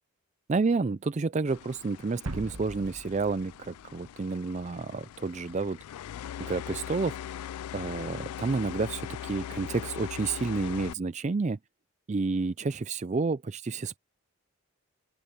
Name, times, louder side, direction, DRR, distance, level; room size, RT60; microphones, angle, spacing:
voice 1, 0.5-5.8 6.4-7.2 7.7-11.6 12.1-14.0, right 4 dB, 30° right, 0.4 m, -30 dB
sound 1, 1.5-10.9, left 10 dB, 85° left, 0.3 m, -41 dB
sound 2, 2.3-4.7, right 2 dB, 80° right, 1.2 m, -41 dB
open air
head